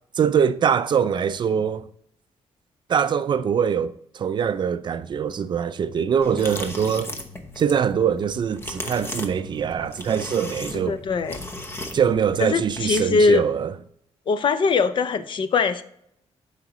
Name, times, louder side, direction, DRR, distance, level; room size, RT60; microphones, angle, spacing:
voice 1, 0.1-1.9 2.9-7.1 7.6-11.0 11.9-13.7, right 7 dB, 45° right, 0.4 m, -23 dB
sound 1, 6.2-13.2, left 1 dB, 20° left, 0.9 m, -36 dB
voice 2, 10.8-11.4 12.4-13.4 14.3-15.8, left 4 dB, 45° left, 0.5 m, -21 dB
11.5 x 4.9 x 3.0 m
cardioid pair, 145°, 11 cm